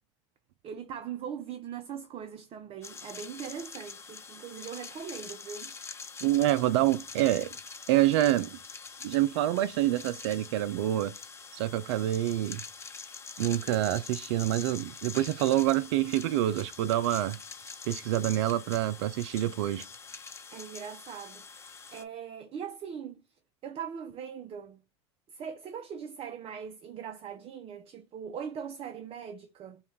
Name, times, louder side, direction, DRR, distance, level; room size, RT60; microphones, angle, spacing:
voice 1, 0.6-5.7 20.5-23.2 23.6-24.8 25.3-29.8, right 7 dB, 40° right, 0.7 m, -41 dB
sound 1, 2.8-22.0, left 5 dB, 15° left, 0.9 m, -45 dB
voice 2, 6.2-7.6 7.9-8.6 9.0-11.1 11.5-12.6 13.4-17.4 17.9-19.8, right 14 dB, 75° right, 0.4 m, -27 dB
5.4 x 2.4 x 3.3 m
hypercardioid pair, 95°, 15 cm